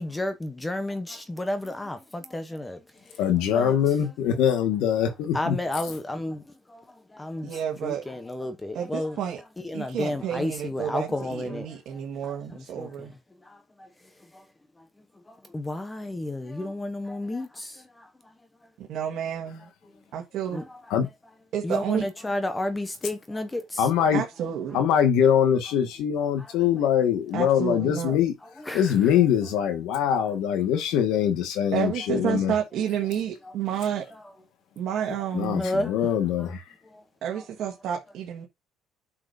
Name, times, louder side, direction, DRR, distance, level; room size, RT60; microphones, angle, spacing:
voice 1, 0.0-2.8 3.5-3.8 5.0-5.1 5.3-6.4 6.7-6.8 7.1-9.2 9.6-12.0 12.5-13.1 15.5-17.8 20.5-20.8 21.6-23.9 26.4-26.5 28.6-29.1 30.2-30.3 34.1-34.2 34.9-35.0 35.6-36.1 37.3-37.7, left 1 dB, 10° left, 0.9 m, -32 dB
voice 2, 3.2-5.5 20.9-21.1 23.8-24.2 24.7-28.3 28.7-32.5 35.3-36.6, left 9 dB, 80° left, 1.7 m, -23 dB
voice 3, 7.4-8.0 8.7-9.4 9.7-13.1 18.8-19.7 20.1-20.6 21.5-22.1 24.1-24.8 27.3-28.1 31.7-34.0 34.7-35.7 37.2-38.5, right 9 dB, 60° right, 1.6 m, -30 dB
8.7 x 6.0 x 2.7 m
cardioid pair, 130°, 0 cm